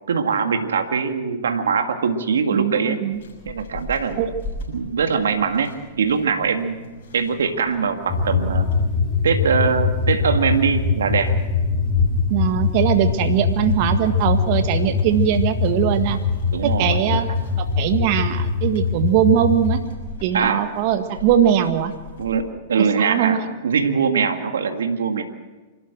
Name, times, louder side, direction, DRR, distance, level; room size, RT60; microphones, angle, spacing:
voice 1, 0.1-3.0 3.5-4.2 4.7-5.7 6.0-6.8 7.1-8.7 9.2-11.3 16.5-17.0 20.3-20.6 22.2-25.2, right 6 dB, 80° right, 6 dB, 1.8 m, -22 dB
voice 2, 2.5-3.2 4.2-4.3 12.3-16.2 16.6-17.3 17.6-19.8 20.2-21.9 23.0-23.4, right 10 dB, 50° right, 8 dB, 1.6 m, -20 dB
sound 1, 3.1-22.4, left 2 dB, 70° left, 6.4 m, -41 dB
sound 2, 8.1-19.8, left 5 dB, 20° left, 5.3 m, -22 dB
27.0 x 13.0 x 7.7 m, 1.2 s
hypercardioid pair, 110°, 0 cm